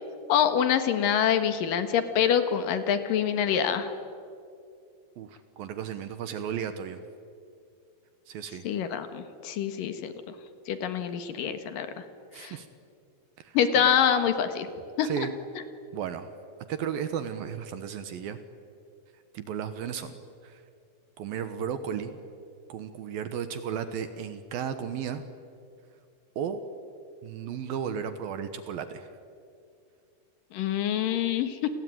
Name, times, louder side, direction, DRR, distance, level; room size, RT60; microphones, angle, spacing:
voice 1, 0.3-3.9 8.6-10.1 10.7-12.0 12.4-12.5 13.5-14.7 15.0-15.3 30.5-31.7, left 8 dB, 65° left, 9 dB, 2.5 m, -25 dB
voice 2, 5.2-7.0 8.3-8.6 12.3-12.7 13.4-13.8 15.0-15.3 15.9-16.3 16.7-18.4 19.3-20.1 20.4-20.6 21.2-22.2 22.7-25.2 26.4-26.6 27.2-29.1, right 8 dB, 70° right, 10 dB, 2.2 m, -34 dB
29.5 x 22.0 x 9.3 m, 2.5 s
omnidirectional pair, 5.6 m